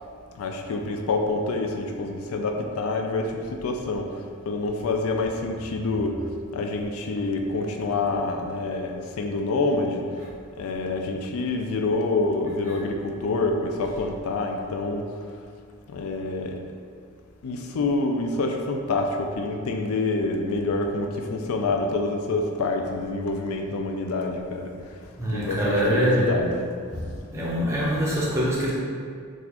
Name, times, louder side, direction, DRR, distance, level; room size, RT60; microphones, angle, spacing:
voice 1, 0.4-4.1 4.5-6.1 6.5-10.0 10.6-15.0 15.9-16.6 17.4-24.7 25.3-26.6, left 3 dB, 80° left, 3 dB, 0.4 m, -27 dB
voice 2, 25.2-26.4 26.9-28.7, equal, 10° right, -6 dB, 0.5 m, -24 dB
3.9 x 2.4 x 2.8 m, 2.2 s
head